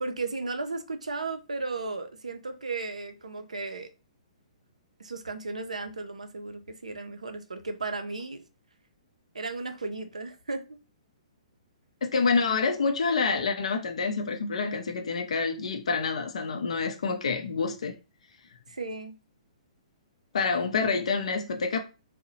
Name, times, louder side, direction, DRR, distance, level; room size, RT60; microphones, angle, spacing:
voice 1, 0.0-3.9 5.0-8.4 9.3-10.8 18.7-19.2, right 3 dB, 80° right, 0.4 m, -35 dB
voice 2, 12.0-17.9 20.3-21.8, left 4 dB, 65° left, 0.4 m, -27 dB
2.7 x 2.0 x 2.7 m
figure-of-eight pair, 120°, 4 cm